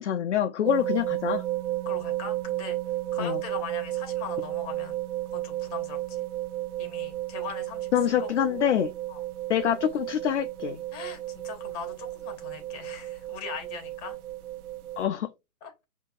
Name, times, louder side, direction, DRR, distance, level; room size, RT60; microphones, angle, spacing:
voice 1, 0.0-1.4 3.2-3.4 7.9-8.9 9.5-10.8 15.0-15.3, left 10 dB, 55° left, 0.5 m, -26 dB
sound 1, 0.6-15.0, right 14 dB, 75° right, 0.6 m, -33 dB
voice 2, 1.8-2.8 3.1-5.0 5.3-6.3 6.8-7.9 8.2-8.6 9.1-9.2 10.9-14.2 15.6-15.8, left 6 dB, 25° left, 1.2 m, -40 dB
5.6 x 2.7 x 2.4 m
hypercardioid pair, 150°, 45 cm